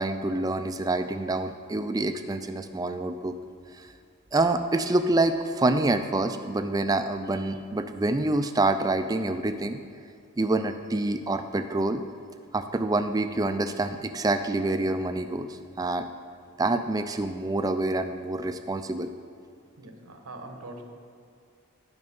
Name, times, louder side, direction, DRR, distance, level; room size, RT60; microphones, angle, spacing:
voice 1, 0.0-3.4 3.8-3.9 4.3-9.8 10.4-12.0 12.5-15.5 15.8-16.1 16.6-19.1, right 2 dB, 15° right, 8 dB, 0.3 m, -26 dB
voice 2, 19.8-20.8, right 2 dB, 85° right, 4 dB, 1.2 m, -42 dB
10.5 x 5.3 x 5.4 m, 2.4 s
head